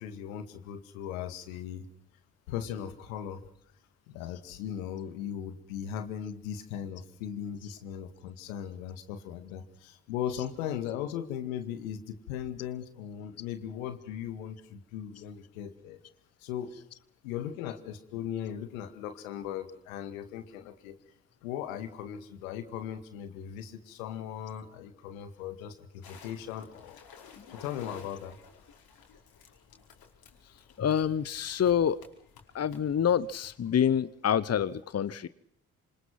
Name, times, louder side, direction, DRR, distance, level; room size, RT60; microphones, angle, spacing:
voice 1, 0.0-1.8 2.5-3.4 4.1-16.0 16.4-16.8 17.2-21.0 21.4-27.0 27.5-28.4, left 9 dB, 80° left, 2.2 m, -38 dB
sound 1, 26.0-33.7, left 5 dB, 60° left, 5.1 m, -54 dB
voice 2, 30.8-32.0 32.5-35.3, left 8 dB, 35° left, 1.1 m, -27 dB
28.0 x 27.0 x 6.0 m
figure-of-eight pair, 40°, 41 cm